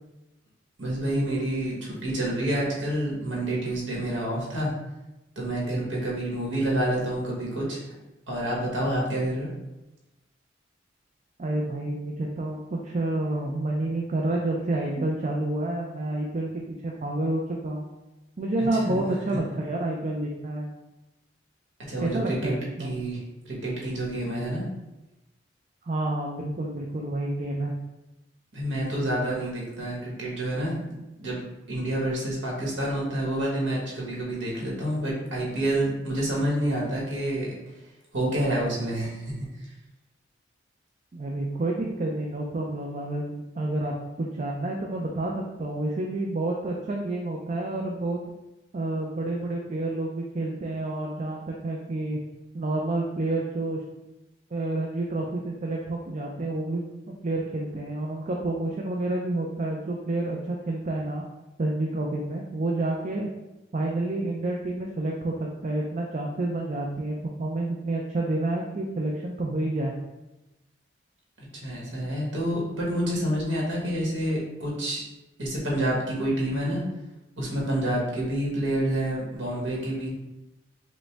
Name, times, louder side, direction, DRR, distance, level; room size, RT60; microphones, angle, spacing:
voice 1, 0.8-4.7 5.3-7.8 8.3-9.5 18.6-19.0 19.3-19.4 21.9-23.2 23.4-24.6 28.5-30.8 31.2-31.4 31.7-37.5 38.1-39.3 71.4-75.0 75.4-76.8 77.4-80.1, right 1 dB, 80° right, -4 dB, 1.3 m, -28 dB
voice 2, 11.4-17.8 18.4-20.7 22.0-22.9 25.9-27.7 41.1-48.2 48.7-52.2 52.5-53.8 54.5-61.2 61.6-63.3 63.7-65.3 65.6-69.9, right 2 dB, 40° right, -1 dB, 0.4 m, -29 dB
5.0 x 2.1 x 3.3 m, 0.99 s
head